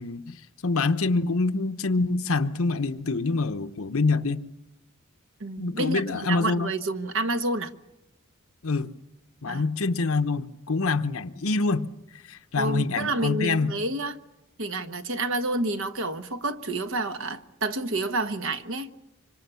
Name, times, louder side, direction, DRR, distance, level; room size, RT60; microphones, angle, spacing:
voice 1, 0.0-4.4 5.6-6.7 8.6-8.9 9.4-11.9 12.1-13.7, left 3 dB, 75° left, 1.0 m, -26 dB
voice 2, 5.4-7.7 9.5-9.7 12.6-14.2 14.6-18.9, right 2 dB, 65° right, 1.2 m, -29 dB
25.5 x 25.0 x 7.0 m
head